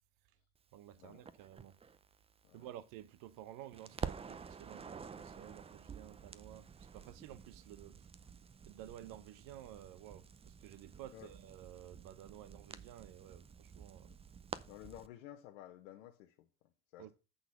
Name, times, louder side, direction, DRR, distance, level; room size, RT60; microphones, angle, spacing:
voice 1, 0.7-1.8 2.5-8.0 8.7-14.1 17.0-17.1, right 12 dB, 60° right, 0.9 m, -53 dB
Crackle, 1.3-3.4 3.7-15.1, right 6 dB, 15° right, 0.5 m, -49 dB
voice 2, 14.7-17.1, left 13 dB, 85° left, 1.0 m, -54 dB
8.1 x 4.0 x 7.0 m
supercardioid pair, 100°, 36 cm